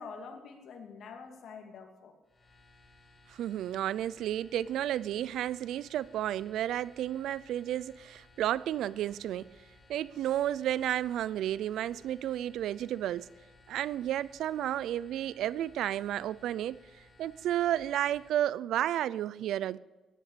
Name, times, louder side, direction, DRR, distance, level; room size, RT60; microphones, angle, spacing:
voice 1, 0.0-2.1, left 5 dB, 70° left, 2.7 m, -46 dB
sound 1, 2.2-18.3, left 2 dB, 20° left, 5.4 m, -60 dB
voice 2, 3.3-9.5 9.9-13.2 13.7-16.8 17.2-19.8, right 12 dB, 80° right, 0.5 m, -32 dB
16.5 x 10.5 x 6.8 m
cardioid pair, 90°, 0 cm